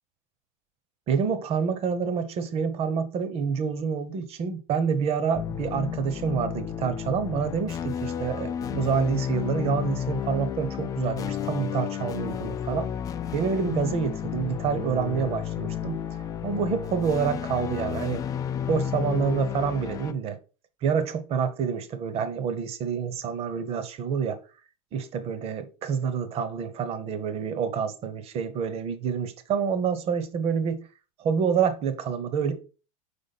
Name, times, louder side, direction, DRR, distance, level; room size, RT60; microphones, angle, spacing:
voice 1, 1.1-12.9 13.3-16.0 16.4-18.2 18.7-20.4 20.8-24.4 24.9-30.9 31.2-32.5, right 6 dB, 35° right, 0.9 m, -27 dB
sound 1, 5.3-20.1, left 9 dB, 20° left, 0.3 m, -32 dB
5.2 x 4.8 x 4.1 m
supercardioid pair, 145°, 17 cm